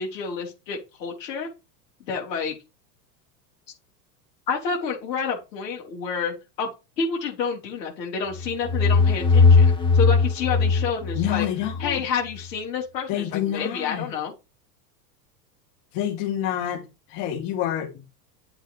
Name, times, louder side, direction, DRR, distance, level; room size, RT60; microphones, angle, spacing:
voice 1, 0.0-1.5 2.1-2.6 4.5-6.7 7.0-11.5 11.8-14.3, left 5 dB, 75° left, 4.2 m, -29 dB
sound 1, 8.3-12.0, left 4 dB, 10° left, 1.6 m, -19 dB
voice 2, 11.1-12.0 13.1-14.1 15.9-16.8 17.1-17.9, left 11 dB, 50° left, 3.7 m, -27 dB
9.8 x 8.0 x 3.4 m
hypercardioid pair, 100°, 50 cm